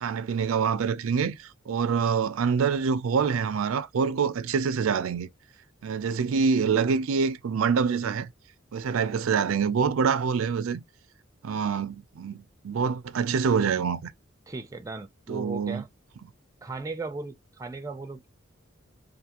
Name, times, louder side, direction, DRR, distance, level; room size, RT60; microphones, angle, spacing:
voice 1, 0.0-5.3 5.8-8.3 8.7-10.8 11.4-14.1 15.3-15.8, right 6 dB, 80° right, 0.4 m, -26 dB
voice 2, 14.5-15.9 16.6-18.3, right 3 dB, 15° right, 0.4 m, -36 dB
2.5 x 2.4 x 2.8 m
head